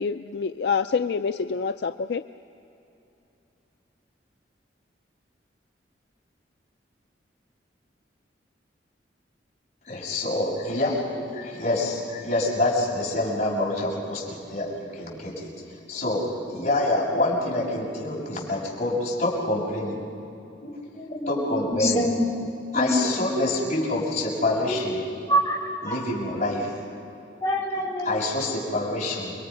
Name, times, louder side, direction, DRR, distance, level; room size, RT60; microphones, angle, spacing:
voice 1, 0.0-2.2, left 5 dB, 65° left, 9 dB, 0.4 m, -26 dB
voice 2, 9.9-15.5 15.9-20.0 20.6-20.7 21.3-22.0 22.7-25.0 25.8-26.7 28.0-29.3, left 2 dB, 40° left, -4 dB, 6.7 m, -26 dB
voice 3, 20.9-22.1 22.7-23.1 24.7-24.8 25.3-26.0 27.4-28.1, equal, 15° left, -4 dB, 4.5 m, -26 dB
29.0 x 23.0 x 5.6 m, 2.9 s
head